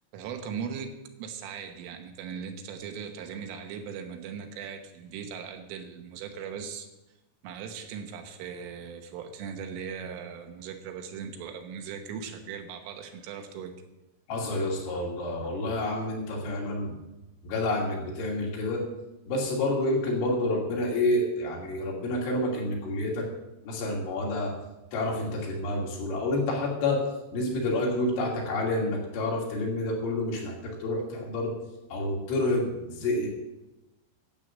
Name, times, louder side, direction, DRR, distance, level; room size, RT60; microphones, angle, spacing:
voice 1, 0.1-6.9 7.4-13.7, right 7 dB, 75° right, 5 dB, 3.6 m, -39 dB
voice 2, 14.3-16.9 17.4-18.8 19.3-23.2 23.7-24.5 24.9-27.0 27.3-31.5 31.9-33.3, left 2 dB, 70° left, -2 dB, 5.0 m, -28 dB
12.5 x 8.3 x 7.4 m, 1.0 s
omnidirectional pair, 5.9 m